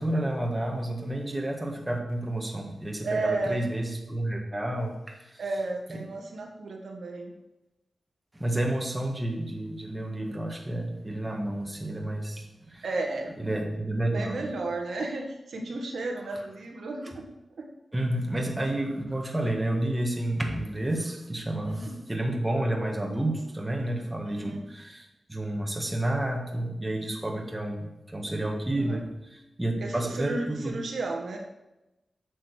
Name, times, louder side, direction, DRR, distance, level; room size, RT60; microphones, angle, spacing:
voice 1, 0.0-5.4 5.9-6.0 8.3-12.8 13.4-14.5 17.9-30.8, right 1 dB, 15° right, 1 dB, 1.7 m, -30 dB
voice 2, 3.0-3.7 5.4-7.3 12.8-13.4 14.1-17.3 17.6-17.7 21.6-21.9 24.3-24.7 28.8-29.0 29.8-31.4, right 2 dB, 80° right, 2 dB, 1.7 m, -33 dB
8.7 x 6.6 x 6.6 m, 0.96 s
wide cardioid pair, 105°, 0 cm